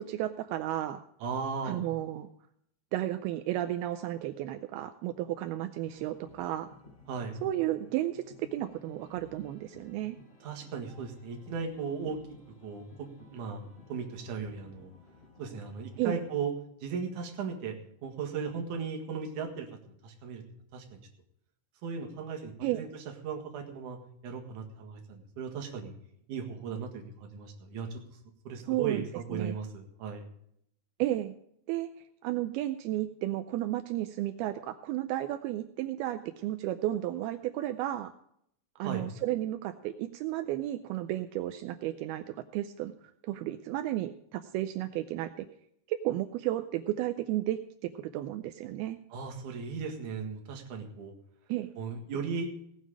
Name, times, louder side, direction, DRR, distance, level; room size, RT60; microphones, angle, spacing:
voice 1, 0.0-1.0 1.6-2.3 2.9-6.7 7.4-10.2 16.0-16.2 22.6-22.8 28.7-29.0 29.3-29.6 31.0-31.3 31.7-31.9 32.2-38.1 38.8-42.9 43.2-45.5 45.9-47.6 47.9-49.0 51.5-51.7, right 14 dB, 85° right, 9 dB, 2.2 m, -33 dB
voice 2, 1.2-1.8 7.1-7.4 10.4-12.2 12.6-13.6 13.9-14.9 15.4-16.5 16.8-17.8 18.0-19.7 20.0-20.4 20.7-20.8 21.8-22.9 23.2-24.0 24.2-25.9 26.3-28.0 28.4-30.2 38.8-39.1 49.1-51.1 51.8-52.5, right 5 dB, 55° right, 2 dB, 2.7 m, -36 dB
sound 1, 5.7-16.4, left 2 dB, 45° left, 5.2 m, -55 dB
18.0 x 7.4 x 4.9 m, 0.72 s
omnidirectional pair, 5.0 m